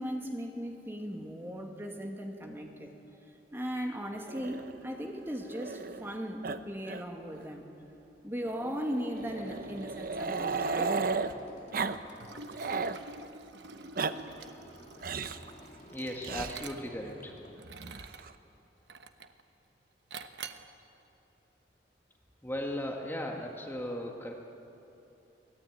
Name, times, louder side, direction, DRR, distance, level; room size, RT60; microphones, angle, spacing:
voice 1, 0.0-3.2 3.5-7.7 8.2-11.0, equal, 15° right, 2 dB, 2.1 m, -38 dB
Growling, 4.3-6.1 6.4-6.6 6.8-7.0 7.3-7.4 8.5-11.3 11.7-12.0 12.3-13.0 13.7-14.1 15.0-15.4 16.2-16.5 17.6-18.3, right 4 dB, 55° right, 0.8 m, -35 dB
sound 1, 9.1-17.6, left 1 dB, 40° left, 2.6 m, -54 dB
Liquid, 12.1-17.1 17.6-18.3 18.9-19.4 20.1-20.7, right 5 dB, 75° right, 1.1 m, -47 dB
voice 2, 15.9-17.3 22.4-24.3, left 1 dB, 10° left, 1 dB, 1.7 m, -37 dB
24.0 x 18.5 x 9.3 m, 2.9 s
head